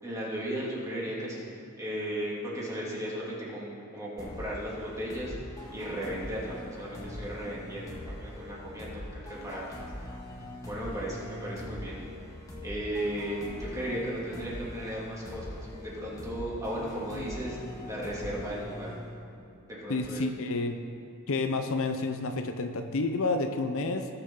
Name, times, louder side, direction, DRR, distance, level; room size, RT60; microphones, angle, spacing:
voice 1, 0.0-1.5 1.8-5.3 5.7-9.9 10.6-12.0 12.6-17.6 17.8-18.9 19.7-20.2, equal, 15° right, -6 dB, 2.6 m, -36 dB
sound 1, 4.2-19.6, left 1 dB, 15° left, 1.8 m, -42 dB
voice 2, 19.9-20.8 21.3-24.1, left 3 dB, 65° left, 7 dB, 0.6 m, -30 dB
18.5 x 6.7 x 3.8 m, 2.6 s
head